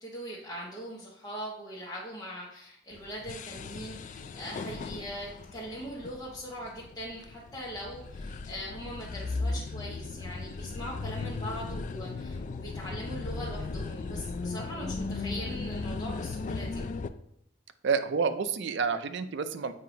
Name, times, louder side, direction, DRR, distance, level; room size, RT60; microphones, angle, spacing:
voice 1, 0.0-16.8, equal, 20° left, -7 dB, 1.1 m, -41 dB
sound 1, 2.9-17.1, left 3 dB, 40° left, 0.3 m, -37 dB
voice 2, 17.8-19.7, right 5 dB, 65° right, 10 dB, 0.5 m, -29 dB
7.5 x 2.8 x 5.0 m, 0.73 s
head